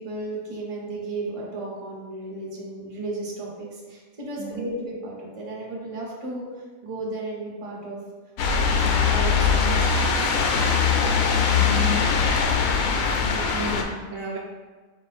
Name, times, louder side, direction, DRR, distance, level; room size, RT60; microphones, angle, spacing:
voice 1, 0.0-6.4 6.8-8.0 8.6-10.3 13.2-13.5, right 2 dB, 25° right, -4 dB, 0.8 m, -34 dB
voice 2, 4.4-4.8 11.5-12.1 13.1-14.4, right 1 dB, 70° right, -2 dB, 1.0 m, -33 dB
sound 1, 8.4-13.8, left 5 dB, 75° left, 1.0 m, -21 dB
4.4 x 2.5 x 4.1 m, 1.4 s
omnidirectional pair, 1.5 m